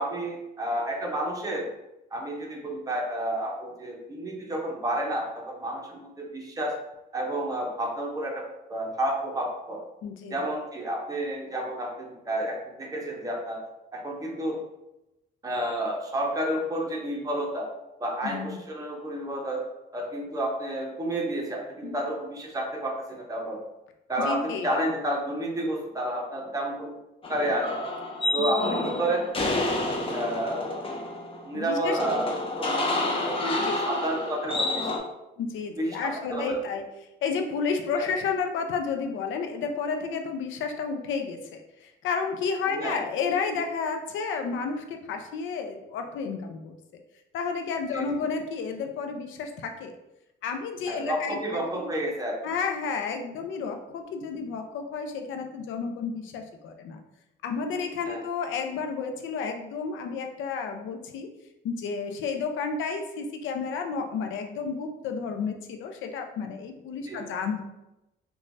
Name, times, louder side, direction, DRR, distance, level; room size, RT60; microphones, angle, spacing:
voice 1, 0.0-1.6 2.1-6.7 7.1-8.4 8.7-9.8 10.3-13.6 13.9-14.6 15.4-17.7 18.0-19.6 19.9-23.6 24.1-27.0 27.3-27.7 28.3-29.2 30.1-30.7 31.5-32.3 32.6-32.7 33.1-35.0 35.8-36.6 38.0-38.1 42.7-43.0 47.9-48.1 50.9-52.4 58.1-58.2 67.1-67.2, right 1 dB, 15° right, -1 dB, 0.7 m, -30 dB
voice 2, 10.0-10.4 18.2-18.6 21.8-22.0 24.2-24.8 28.6-29.0 31.5-32.0 33.6-33.7 35.4-36.8 37.2-46.8 47.3-50.0 50.4-51.9 52.4-57.0 57.4-61.3 61.6-67.6, left 5 dB, 80° left, 5 dB, 0.4 m, -31 dB
sound 1, 27.2-35.0, left 2 dB, 30° left, 0.5 m, -29 dB
3.0 x 2.2 x 2.6 m, 0.92 s
cardioid pair, 90°, 20 cm